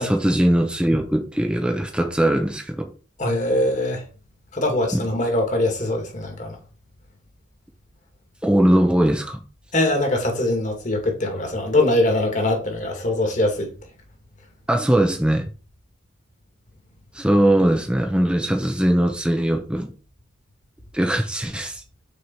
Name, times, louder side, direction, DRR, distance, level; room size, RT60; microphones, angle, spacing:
voice 1, 0.0-2.9 4.9-5.0 8.4-9.4 14.7-15.5 17.1-19.9 20.9-21.8, right 1 dB, 5° right, 0.8 m, -20 dB
voice 2, 3.2-4.0 4.5-6.6 9.7-13.7, left 1 dB, 40° left, 2.1 m, -22 dB
6.5 x 4.5 x 4.6 m
head